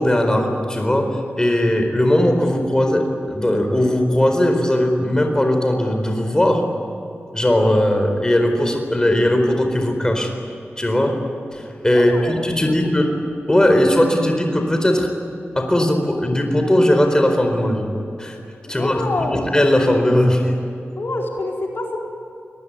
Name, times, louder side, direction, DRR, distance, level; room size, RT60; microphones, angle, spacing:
voice 1, 0.0-6.6 7.3-10.3 10.8-11.2 11.5-13.1 13.5-15.1 15.5-17.9 18.2-18.4 18.7-19.0 19.3-20.5, left 1 dB, 15° left, 4 dB, 4.4 m, -18 dB
voice 2, 11.9-12.4 18.7-19.4 21.0-22.0, left 2 dB, 60° left, 0 dB, 4.4 m, -26 dB
27.0 x 20.5 x 9.7 m, 2.6 s
wide cardioid pair, 75°, 4 cm